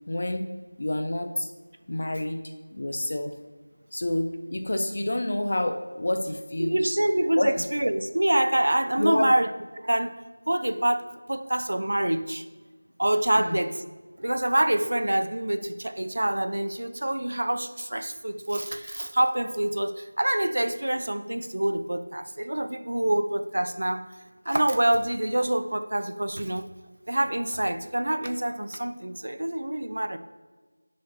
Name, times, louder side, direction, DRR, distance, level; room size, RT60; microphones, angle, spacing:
voice 1, 0.1-0.5 0.8-1.5 1.9-2.4 2.7-3.3 3.9-7.0 7.4-7.5 9.0-9.3 13.4-13.6, left 1 dB, 40° left, 5 dB, 0.4 m, -28 dB
voice 2, 6.6-9.5 9.8-10.2 10.5-12.4 13.0-13.8 14.2-24.1 24.5-26.7 27.1-30.2, right 1 dB, 60° right, 10 dB, 0.5 m, -26 dB
6.3 x 4.1 x 4.0 m, 1.3 s
figure-of-eight pair, 175°, 0 cm